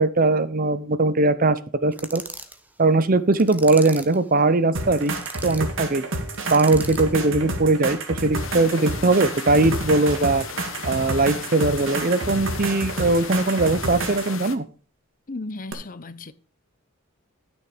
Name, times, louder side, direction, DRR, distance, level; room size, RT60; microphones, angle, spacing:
voice 1, 0.0-2.2 2.8-5.1 5.4-6.0 6.5-10.4 10.8-14.6, right 2 dB, 40° right, 0.7 m, -20 dB
sound 1, 1.9-2.6 3.3-4.2 4.9-5.6 6.3-7.1, right 2 dB, 5° right, 0.9 m, -38 dB
sound 2, 4.7-14.3 15.7-15.8, right 2 dB, 60° right, 2.0 m, -29 dB
sound 3, 8.3-14.6, left 7 dB, 65° left, 1.1 m, -37 dB
voice 2, 15.3-16.3, left 2 dB, 40° left, 0.7 m, -35 dB
12.5 x 6.4 x 5.1 m
head